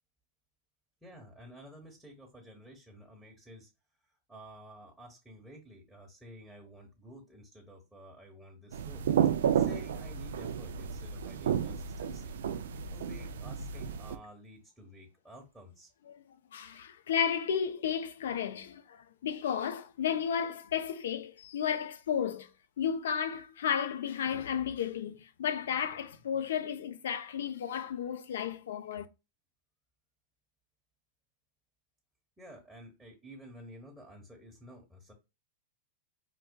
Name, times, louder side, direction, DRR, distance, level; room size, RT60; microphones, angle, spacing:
voice 1, 1.0-3.7 4.3-9.1 9.5-12.3 12.9-15.9 32.4-35.1, equal, 5° right, 1.0 m, -52 dB
sound 1, 8.7-14.2, right 8 dB, 80° right, 0.3 m, -32 dB
voice 2, 16.5-22.5 22.8-29.1, left 8 dB, 80° left, 0.5 m, -33 dB
4.7 x 2.2 x 2.2 m
hypercardioid pair, 115°, 0 cm